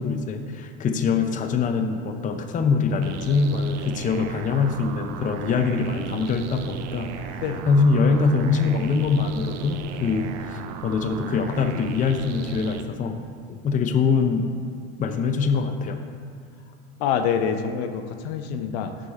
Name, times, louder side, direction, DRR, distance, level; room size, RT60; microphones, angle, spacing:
voice 1, 0.0-13.2 13.6-14.5 15.0-16.0, left 4 dB, 25° left, 6 dB, 0.6 m, -23 dB
sound 1, 3.0-12.8, right 8 dB, 50° right, 0.6 m, -36 dB
voice 2, 17.0-18.9, left 7 dB, 70° left, 7 dB, 0.7 m, -26 dB
7.0 x 6.3 x 4.2 m, 2.3 s
hypercardioid pair, 95°, 34 cm